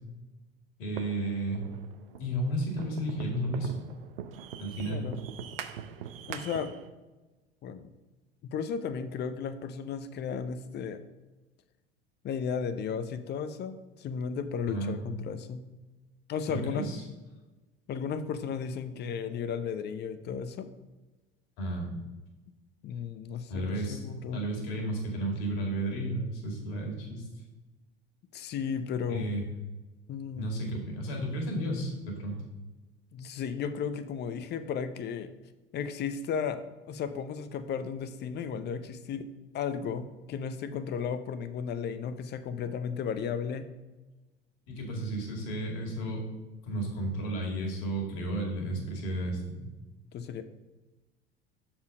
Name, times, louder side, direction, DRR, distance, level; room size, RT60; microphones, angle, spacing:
voice 1, 0.8-1.6 2.2-3.7 4.6-5.0 14.7-15.0 16.5-17.0 21.6-21.9 23.5-24.0 24.3-27.3 29.1-29.4 30.3-32.4 44.7-46.2 46.6-49.7, right 1 dB, 60° left, 0 dB, 2.3 m, -33 dB
sound 1, 0.9-6.9, right 9 dB, 70° right, 0.6 m, -43 dB
voice 2, 4.8-5.2 6.3-6.7 7.6-7.9 8.4-11.0 12.2-15.6 16.3-16.9 17.9-20.7 22.8-24.4 28.3-29.3 30.1-30.5 33.1-35.3 35.7-39.3 39.5-43.7 50.1-50.4, left 6 dB, 35° left, 11 dB, 0.7 m, -34 dB
7.0 x 4.4 x 5.2 m, 1.2 s
figure-of-eight pair, 75°, 30 cm